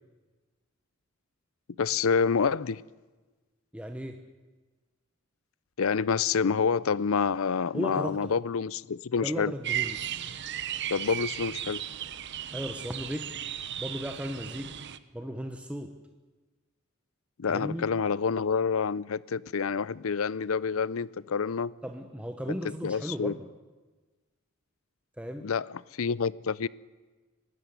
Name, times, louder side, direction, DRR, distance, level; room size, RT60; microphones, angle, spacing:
voice 1, 1.8-2.8 5.8-9.5 10.9-11.8 17.4-21.7 22.6-23.4 25.4-26.7, left 5 dB, 75° left, 0.5 m, -28 dB
voice 2, 3.7-4.2 7.7-8.3 9.2-10.0 12.5-13.4 13.8-14.8 15.1-16.0 17.5-17.9 21.8-23.5 25.2-25.5, equal, 5° right, 1.0 m, -36 dB
sound 1, 9.6-15.0, right 10 dB, 55° right, 0.9 m, -35 dB
24.0 x 13.0 x 9.5 m
head